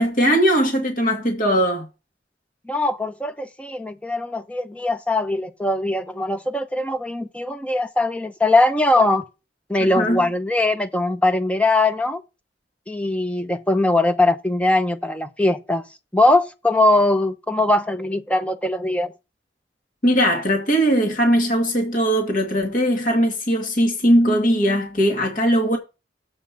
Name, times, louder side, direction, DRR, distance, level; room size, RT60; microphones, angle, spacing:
voice 1, 0.0-1.9 9.8-10.3 20.0-25.8, equal, 45° left, 2.2 m, -19 dB
voice 2, 2.7-9.2 9.7-12.2 12.9-15.8 16.1-19.1, left 2 dB, 5° left, 0.7 m, -21 dB
7.7 x 5.3 x 7.3 m
head